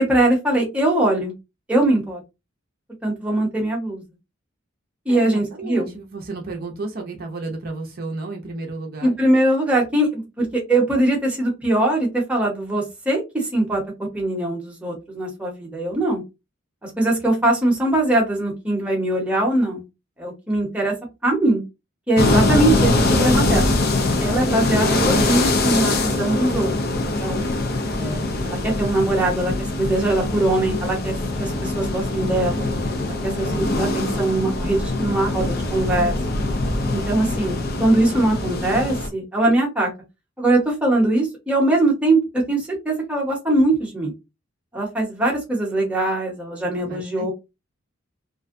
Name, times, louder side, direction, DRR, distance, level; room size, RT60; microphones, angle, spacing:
voice 1, 0.0-1.3 1.7-2.2 3.0-4.0 5.1-5.9 9.0-13.8 14.1-16.2 16.8-19.8 20.2-20.9 21.2-21.6 22.1-23.7 24.2-27.4 28.0-32.7 33.1-36.2 36.9-39.9 40.4-44.1 44.7-47.3, right 1 dB, 5° right, -2 dB, 0.8 m, -21 dB
voice 2, 5.1-9.2 22.3-22.6 24.5-24.6 46.8-47.3, right 3 dB, 45° right, 2 dB, 0.5 m, -33 dB
sound 1, 22.2-39.1, left 2 dB, 50° left, 0.4 m, -22 dB
2.5 x 2.1 x 2.5 m, 0.24 s
head